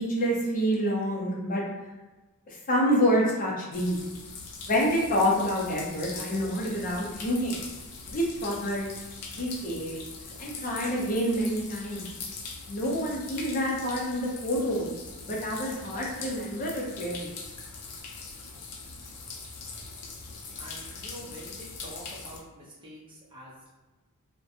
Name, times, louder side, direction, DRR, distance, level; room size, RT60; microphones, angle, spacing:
voice 1, 0.0-1.6 2.5-4.0 4.6-7.6 8.1-8.9 9.3-10.0 10.4-12.0 12.7-14.9 15.2-17.3, equal, 40° left, -3 dB, 0.6 m, -27 dB
sound 1, 3.7-22.4, left 4 dB, 85° left, 0.5 m, -42 dB
voice 2, 20.6-23.7, equal, 25° right, -5 dB, 0.7 m, -46 dB
2.5 x 2.1 x 2.7 m, 1.1 s
head